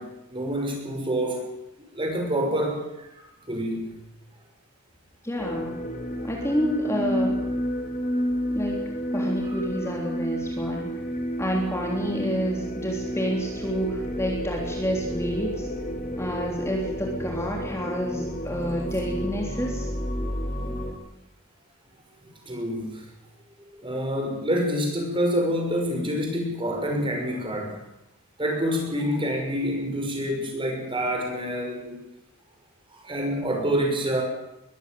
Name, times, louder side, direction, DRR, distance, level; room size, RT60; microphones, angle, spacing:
voice 1, 0.0-1.5 1.9-3.2 3.5-4.0 9.5-9.6 22.2-23.1 23.7-27.8 28.4-32.0 32.9-34.2, equal, 25° right, 2 dB, 6.2 m, -27 dB
voice 2, 5.2-5.8 6.2-7.4 8.5-8.8 9.1-10.9 11.4-15.7 16.2-19.9, equal, 15° left, -1 dB, 3.5 m, -29 dB
sound 1, 5.4-20.9, equal, 40° left, 4.3 m, -31 dB
22.0 x 15.0 x 9.4 m, 0.87 s
head